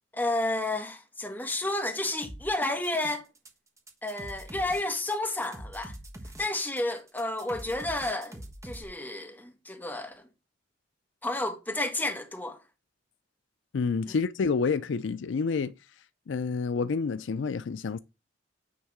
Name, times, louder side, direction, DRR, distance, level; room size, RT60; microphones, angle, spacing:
voice 1, 0.1-3.3 4.0-5.9 6.4-10.3 11.2-12.6 14.1-14.2, left 2 dB, 10° left, 1.5 m, -31 dB
sound 1, 2.2-3.5 3.8-8.8, right 1 dB, 15° right, 1.2 m, -44 dB
voice 2, 13.7-15.7 16.3-18.0, left 5 dB, 70° left, 0.4 m, -28 dB
9.5 x 3.6 x 5.9 m
head